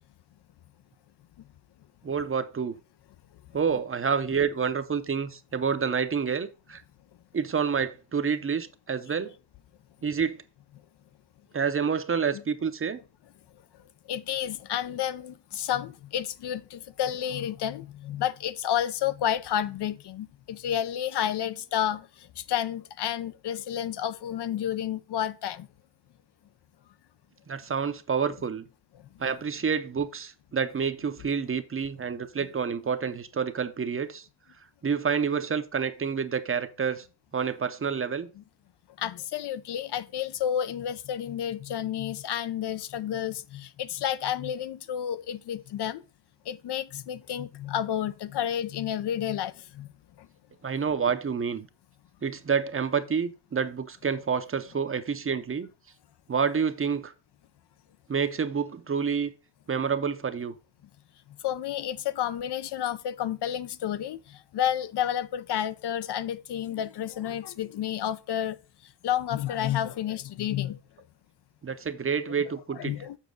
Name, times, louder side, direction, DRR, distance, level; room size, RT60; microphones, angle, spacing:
voice 1, 2.0-2.8 3.5-6.8 7.3-9.3 10.0-10.4 11.5-13.0 27.5-28.6 29.2-34.3 34.8-37.1 37.3-38.3 50.6-51.7 52.2-55.7 56.3-57.1 58.1-59.3 59.7-60.5 71.6-72.9, right 6 dB, 30° right, 0.6 m, -28 dB
voice 2, 14.1-25.7 39.0-46.0 46.5-49.9 50.2-50.3 61.4-68.6 69.0-70.8 72.8-73.2, left 10 dB, 65° left, 0.6 m, -30 dB
7.3 x 6.0 x 3.8 m
wide cardioid pair, 135°, 43 cm